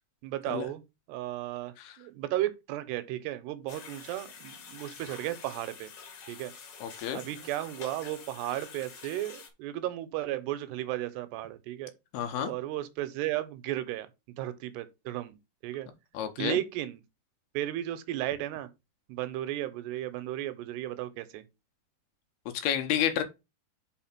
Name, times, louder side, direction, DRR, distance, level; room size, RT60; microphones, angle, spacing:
voice 1, 0.2-0.8 1.1-5.9 6.3-6.5 7.1-11.9 12.4-14.1 14.4-15.4 15.6-15.9 16.4-17.0 17.5-18.7 19.1-21.4, right 14 dB, 85° right, 2.8 m, -34 dB
sound 1, 3.7-9.5, left 6 dB, 50° left, 2.6 m, -47 dB
voice 2, 6.8-7.2 12.1-12.5 16.1-16.6 22.5-23.2, left 10 dB, 75° left, 2.7 m, -30 dB
5.7 x 4.5 x 5.9 m
omnidirectional pair, 4.9 m